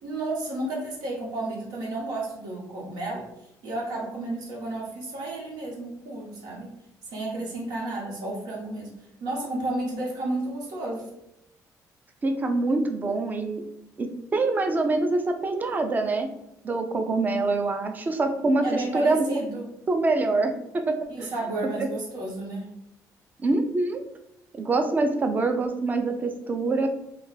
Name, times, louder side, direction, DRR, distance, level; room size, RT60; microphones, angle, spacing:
voice 1, 0.0-3.3 3.6-6.7 7.0-8.9 9.2-11.1 18.6-19.7 21.1-22.7, right 2 dB, 90° right, -3 dB, 1.0 m, -32 dB
voice 2, 12.2-13.6 14.0-16.3 16.6-18.6 18.9-19.4 19.9-21.1 21.6-21.9 23.4-24.0 24.5-26.9, right 3 dB, 25° right, 6 dB, 0.4 m, -25 dB
2.4 x 2.2 x 3.9 m, 0.85 s
cardioid pair, 115°, 7 cm